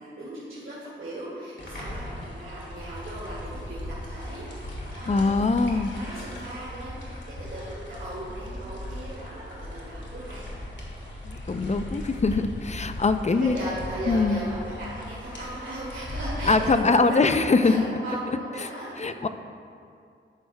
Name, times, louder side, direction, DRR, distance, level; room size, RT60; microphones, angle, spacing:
voice 1, 0.0-10.4 12.9-13.0 13.3-19.3, right 1 dB, 85° right, -9 dB, 2.0 m, -37 dB
sound 1, 1.6-16.7, left 1 dB, 65° left, 2.0 m, -38 dB
voice 2, 5.1-5.9 11.2-13.6 14.1-14.4 16.4-17.8 19.0-19.3, left 3 dB, 35° left, 9 dB, 0.4 m, -22 dB
12.5 x 9.3 x 2.2 m, 2.4 s
wide cardioid pair, 90°, 20 cm